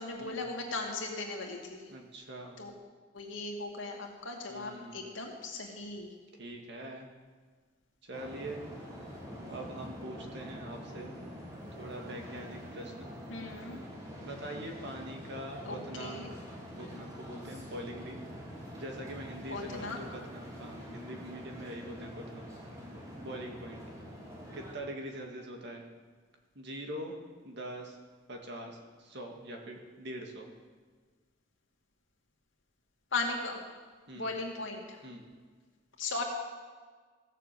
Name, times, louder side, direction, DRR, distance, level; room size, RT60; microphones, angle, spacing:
voice 1, 0.0-1.8 2.6-2.7 3.1-6.1 13.3-13.8 15.6-16.3 19.5-20.0 33.1-33.6 34.1-35.0 36.0-36.2, left 3 dB, 85° left, 0 dB, 2.4 m, -37 dB
voice 2, 1.9-2.6 4.5-5.1 6.4-7.1 8.0-8.6 9.5-11.1 11.8-13.1 14.2-16.4 16.8-18.2 18.7-22.5 23.2-23.8 24.5-25.8 26.6-27.2 27.4-28.0 28.3-30.5 34.1-34.3 35.0-35.2, right 1 dB, 65° right, 2 dB, 2.1 m, -43 dB
sound 1, 8.1-24.7, equal, 20° right, 3.0 m, -45 dB
16.0 x 7.4 x 7.6 m, 1.5 s
head